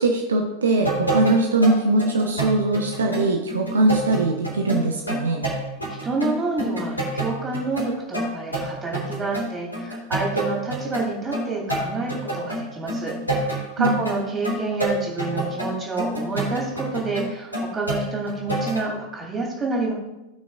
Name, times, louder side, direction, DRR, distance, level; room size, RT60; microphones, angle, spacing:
voice 1, 0.0-5.4 13.8-14.0, right 2 dB, 70° right, 2 dB, 0.9 m, -21 dB
sound 1, 0.7-18.9, right 1 dB, 85° left, 3.2 m, -28 dB
voice 2, 6.0-19.9, right 3 dB, 20° right, -2 dB, 2.8 m, -28 dB
16.5 x 6.0 x 2.4 m, 0.97 s
figure-of-eight pair, 90°, 0 cm